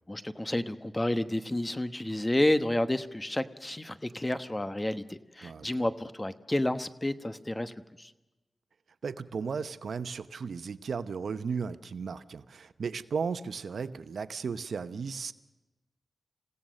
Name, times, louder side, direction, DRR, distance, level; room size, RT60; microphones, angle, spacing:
voice 1, 0.1-8.1, left 1 dB, 20° left, 11 dB, 1.1 m, -30 dB
voice 2, 9.0-15.3, right 5 dB, 85° right, 13 dB, 0.9 m, -35 dB
28.5 x 17.0 x 6.4 m, 1.0 s
wide cardioid pair, 85°, 0 cm